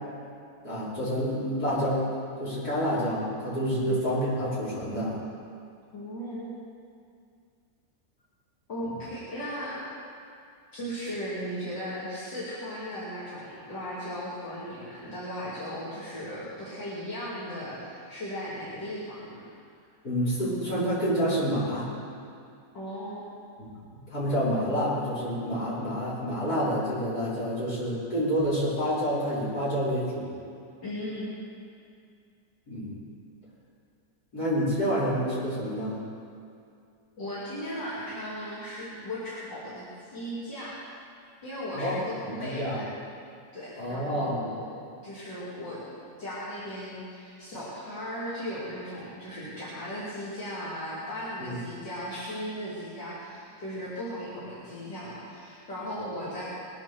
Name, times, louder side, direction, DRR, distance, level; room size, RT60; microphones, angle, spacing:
voice 1, 0.6-2.0 2.4-5.2 8.8-9.0 20.0-21.9 23.6-30.3 32.7-33.0 34.3-36.0 41.7-42.0 42.2-42.8 43.8-44.5 51.4-51.6, equal, 60° left, -10 dB, 5.5 m, -28 dB
voice 2, 5.9-6.5 8.7-9.8 10.7-19.4 22.7-23.2 30.8-31.3 37.2-40.8 41.4-42.6 43.5-44.7 45.0-45.8 46.2-56.4, equal, 80° left, -10 dB, 3.5 m, -37 dB
20.5 x 8.2 x 7.0 m, 2.4 s
omnidirectional pair, 1.9 m